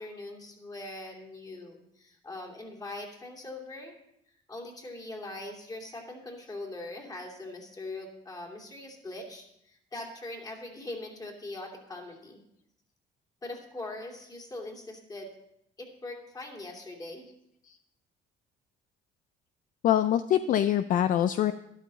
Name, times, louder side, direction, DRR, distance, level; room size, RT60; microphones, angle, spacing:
voice 1, 0.0-3.9 4.5-12.4 13.4-15.3 15.8-17.3, left 2 dB, 20° left, 1 dB, 2.7 m, -41 dB
voice 2, 19.8-21.5, left 11 dB, 55° left, 11 dB, 0.5 m, -24 dB
12.5 x 11.5 x 4.1 m, 0.77 s
cardioid pair, 110°, 17 cm